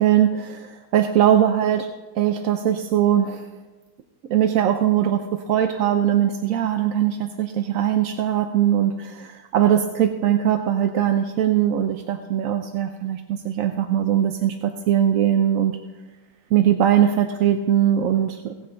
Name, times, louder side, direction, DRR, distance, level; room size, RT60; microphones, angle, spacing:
voice 1, 0.0-1.9 2.1-3.4 4.3-15.8 16.5-18.7, right 10 dB, 65° right, 6 dB, 0.9 m, -21 dB
17.0 x 9.2 x 3.9 m, 1.2 s
omnidirectional pair, 1.9 m